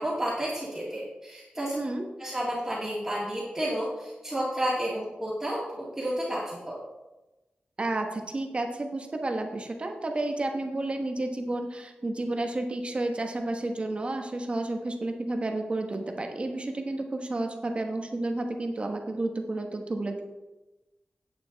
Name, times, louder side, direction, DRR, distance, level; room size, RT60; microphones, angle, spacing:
voice 1, 0.0-1.8 2.2-6.8, equal, 10° right, -7 dB, 2.2 m, -31 dB
voice 2, 1.7-2.0 7.8-20.2, right 2 dB, 35° right, 4 dB, 1.1 m, -31 dB
9.4 x 8.3 x 4.0 m, 1.1 s
wide cardioid pair, 125°, 3 cm